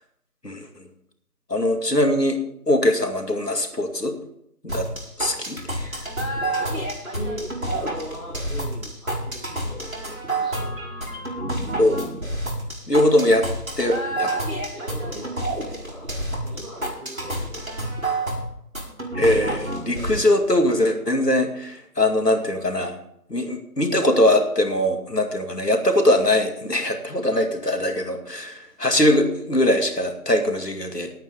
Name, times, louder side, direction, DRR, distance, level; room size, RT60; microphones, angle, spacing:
voice 1, 0.4-0.9 1.5-2.4 2.7-4.2 4.6-4.9 5.2-6.0 11.8-12.0 12.9-13.5 13.8-14.4 19.1-23.0 23.3-31.1, left 1 dB, 80° left, 5 dB, 2.3 m, -21 dB
sound 1, 4.7-20.2, right 1 dB, 60° right, 5.1 m, -29 dB
voice 2, 6.5-10.7 14.7-15.3 15.6-17.7 18.1-18.3, equal, 20° left, -14 dB, 6.3 m, -39 dB
20.0 x 9.0 x 3.6 m, 0.74 s
figure-of-eight pair, 180°, 47 cm